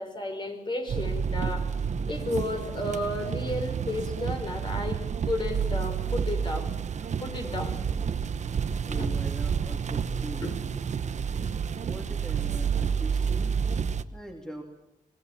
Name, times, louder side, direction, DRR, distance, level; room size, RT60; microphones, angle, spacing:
voice 1, 0.0-1.7 2.1-5.0 5.3-6.7 7.2-7.8 8.9-9.2 10.4-10.5, left 2 dB, 35° left, 4 dB, 5.4 m, -32 dB
sound 1, 0.9-14.0, right 6 dB, 60° right, 1.1 m, -30 dB
Guitar, 2.3-5.3, left 3 dB, 60° left, 4.2 m, -51 dB
voice 2, 8.3-10.6 11.7-14.6, right 1 dB, 5° left, 2 dB, 2.9 m, -43 dB
25.0 x 21.0 x 7.4 m, 0.91 s
wide cardioid pair, 110°, 14 cm